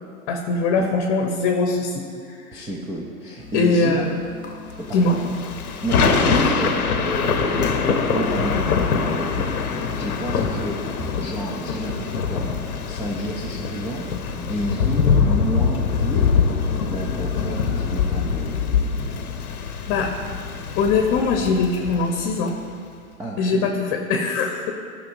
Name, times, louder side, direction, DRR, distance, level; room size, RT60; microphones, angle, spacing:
voice 1, 0.3-2.6 3.5-4.2 4.9-5.2 6.3-6.6 19.9-20.1 20.8-22.5 23.4-24.7, left 4 dB, 40° left, 2 dB, 0.9 m, -22 dB
voice 2, 2.5-4.1 4.8-5.4 5.8-6.8 7.0-9.5 10.0-10.8 11.2-14.1 14.4-16.3 16.9-19.2 23.2-23.7, right 1 dB, 5° right, -4 dB, 0.4 m, -30 dB
sound 1, 3.4-11.4, left 3 dB, 20° left, 1.1 m, -42 dB
Thunder / Rain, 5.0-22.5, left 5 dB, 90° left, 0.8 m, -23 dB
12.5 x 5.7 x 2.6 m, 2.3 s
hypercardioid pair, 115°, 43 cm